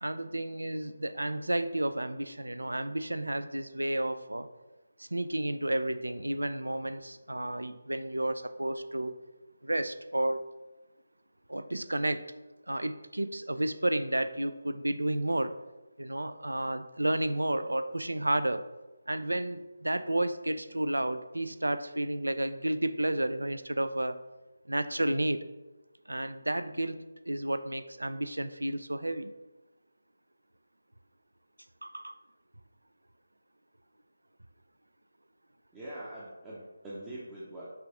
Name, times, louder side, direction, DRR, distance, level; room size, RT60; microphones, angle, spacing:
voice 1, 0.0-4.5 5.0-9.1 9.6-10.4 11.5-12.3 12.7-15.6 16.0-18.6 19.1-24.2 24.7-25.4 26.1-29.3 31.8-32.1, right 1 dB, 80° right, 11 dB, 0.3 m, -31 dB
voice 2, 35.7-37.7, right 1 dB, 10° right, -8 dB, 0.6 m, -43 dB
5.7 x 2.5 x 3.4 m, 1.1 s
figure-of-eight pair, 155°, 0 cm